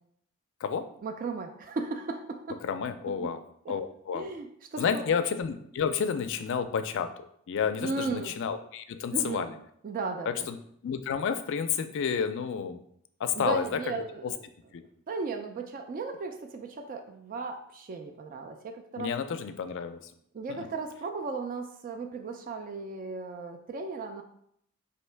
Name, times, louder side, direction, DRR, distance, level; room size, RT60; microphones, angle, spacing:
voice 1, 1.0-2.6 3.2-3.3 3.7-3.8 4.1-5.1 7.8-8.3 9.1-9.4 9.8-10.5 13.4-14.4 15.1-19.1 20.3-24.2, right 4 dB, 40° right, 5 dB, 0.3 m, -36 dB
voice 2, 2.6-3.4 3.7-4.3 4.8-7.1 7.5-9.5 10.3-10.6 10.8-12.8 13.2-13.8 14.7-14.8 19.0-20.0 20.5-20.7, left 7 dB, 60° left, 10 dB, 0.3 m, -30 dB
4.5 x 2.8 x 3.2 m, 0.69 s
head